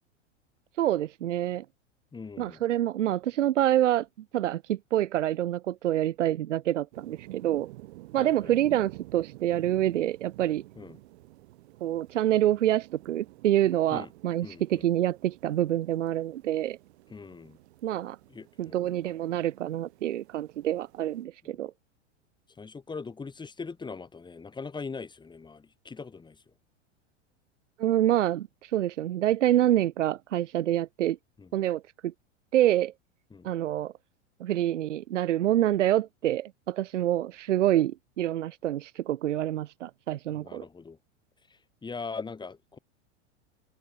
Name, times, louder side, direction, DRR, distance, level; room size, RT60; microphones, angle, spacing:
voice 1, 0.8-1.6 2.4-4.1 4.3-7.7 8.1-10.6 11.8-16.8 17.8-18.2 18.6-21.7 27.8-31.2 31.5-32.1 32.5-32.9 33.4-33.9 34.4-40.6, right 12 dB, 80° right, 0.6 m, -27 dB
voice 2, 2.1-2.6 8.2-8.5 10.7-11.0 13.9-14.1 14.4-14.9 17.1-17.6 18.3-18.9 21.4-21.6 22.6-26.4 31.4-31.5 33.3-33.5 40.3-41.0 41.8-42.8, left 4 dB, 10° left, 1.3 m, -41 dB
sound 1, 6.9-21.2, right 18 dB, 60° right, 1.5 m, -50 dB
hypercardioid pair, 95°, 36 cm